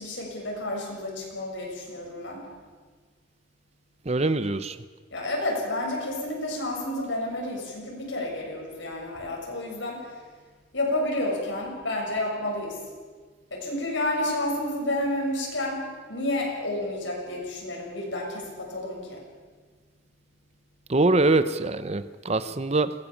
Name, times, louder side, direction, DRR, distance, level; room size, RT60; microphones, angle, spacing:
voice 1, 0.0-2.5 5.1-10.2 10.7-12.8 13.5-19.2, left 1 dB, 85° left, -1 dB, 6.9 m, -30 dB
voice 2, 4.0-4.8 20.9-22.9, right 2 dB, 35° right, 13 dB, 0.7 m, -23 dB
22.0 x 17.5 x 7.2 m, 1.5 s
head